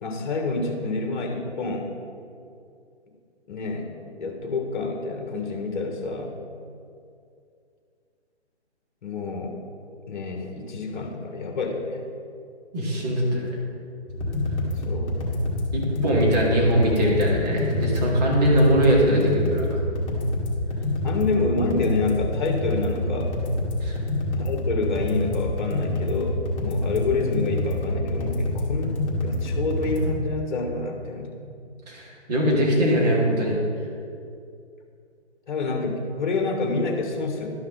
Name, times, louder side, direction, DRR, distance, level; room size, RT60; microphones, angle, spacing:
voice 1, 0.0-1.9 3.5-6.4 9.0-9.6 10.1-12.0 14.8-15.2 20.8-23.3 24.4-31.4 35.5-37.5, left 3 dB, 45° left, 3 dB, 1.4 m, -28 dB
voice 2, 12.7-13.5 15.7-19.8 23.8-24.0 31.9-33.6, equal, 35° right, -3 dB, 2.1 m, -21 dB
sound 1, 14.1-30.1, left 1 dB, 30° left, 1.8 m, -27 dB
12.0 x 5.8 x 3.9 m, 2.4 s
figure-of-eight pair, 150°, 34 cm